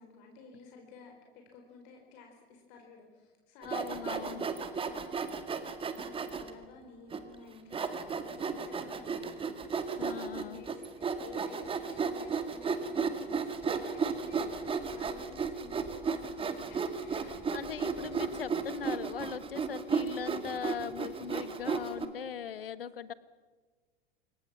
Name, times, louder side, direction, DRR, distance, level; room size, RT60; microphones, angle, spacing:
voice 1, 0.0-5.5 5.9-17.4, left 4 dB, 50° left, 2 dB, 4.6 m, -53 dB
voice 2, 3.6-4.5 10.0-10.6 17.5-23.1, left 8 dB, 70° left, 15 dB, 1.4 m, -40 dB
Sawing, 3.6-6.5 7.1-7.2 7.7-22.1, right 5 dB, 20° right, 2.2 m, -34 dB
28.5 x 22.5 x 6.1 m, 1.4 s
figure-of-eight pair, 85°, 30 cm